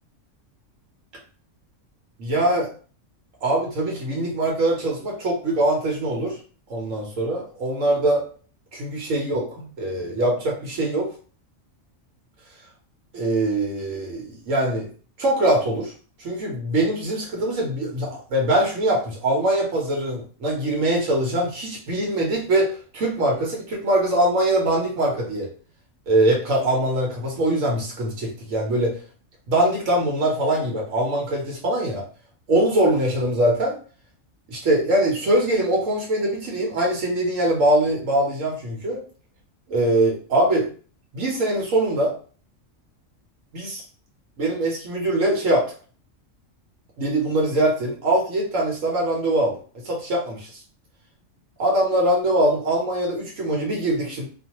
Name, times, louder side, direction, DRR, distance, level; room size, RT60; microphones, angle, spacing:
voice 1, 2.2-2.7 3.4-6.4 6.7-8.2 8.7-11.1 13.1-14.9 15.2-15.9 16.2-25.5 26.1-29.0 29.5-32.0 32.5-33.7 34.5-39.0 39.7-40.7 41.1-42.1 43.5-43.8 44.4-45.7 47.0-49.6 49.8-50.5 51.6-54.3, right 1 dB, 85° right, -1 dB, 1.2 m, -22 dB
2.6 x 2.3 x 2.9 m, 0.40 s
omnidirectional pair, 1.3 m